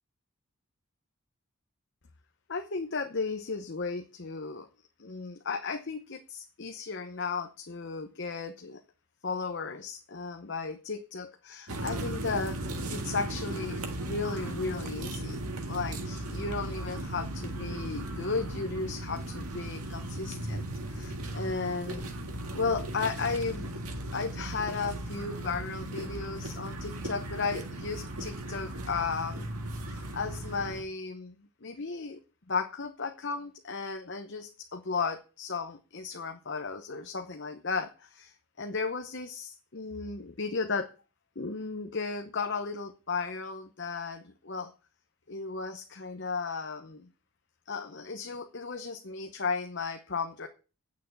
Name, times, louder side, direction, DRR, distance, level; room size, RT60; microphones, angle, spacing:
voice 1, 2.5-4.7 5.0-8.8 9.2-12.6 12.9-15.4 15.7-22.1 22.5-23.7 24.1-29.5 29.9-31.3 31.6-32.2 32.5-40.9 41.4-44.7 45.3-47.1 47.7-50.5, left 4 dB, 50° left, 6 dB, 0.9 m, -35 dB
sound 1, 11.7-30.8, right 1 dB, 90° right, 1.8 m, -37 dB
9.1 x 6.3 x 8.2 m, 0.35 s
head